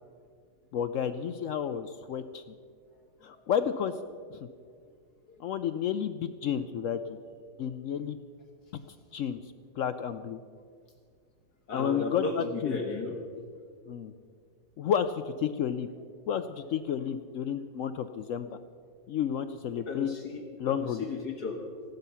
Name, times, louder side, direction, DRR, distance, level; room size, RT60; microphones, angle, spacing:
voice 1, 0.7-2.4 3.2-4.0 4.3-4.5 5.4-7.2 7.6-8.2 9.1-10.4 11.7-12.8 13.9-14.1 14.8-15.9 16.3-18.6 19.1-20.1 20.6-21.0, left 8 dB, 80° left, 10 dB, 0.7 m, -31 dB
voice 2, 11.7-13.2 19.9-20.4 20.7-21.6, left 3 dB, 60° left, 2 dB, 1.8 m, -34 dB
16.0 x 12.0 x 5.6 m, 2.1 s
omnidirectional pair, 1.9 m